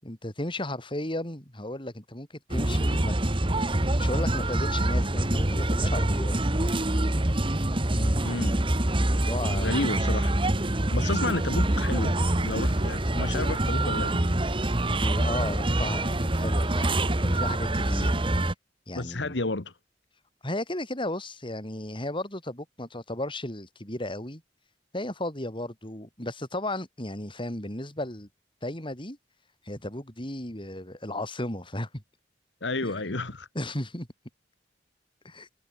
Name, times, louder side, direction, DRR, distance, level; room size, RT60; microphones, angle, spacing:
voice 1, 0.0-3.1 3.4-3.6 4.0-6.4 7.9-8.3 9.0-9.8 14.9-18.5 18.9-19.4 20.4-24.4 24.9-28.3 28.6-29.2 29.6-32.0 32.8-33.2 33.5-34.1 35.2-35.5, left 1 dB, 30° left, 6.5 m, -35 dB
sound 1, 2.5-18.5, right 1 dB, 30° right, 1.7 m, -25 dB
voice 2, 8.2-8.7 9.5-10.4 10.7-14.3 19.0-19.7 32.6-33.5, left 2 dB, 90° left, 1.7 m, -31 dB
head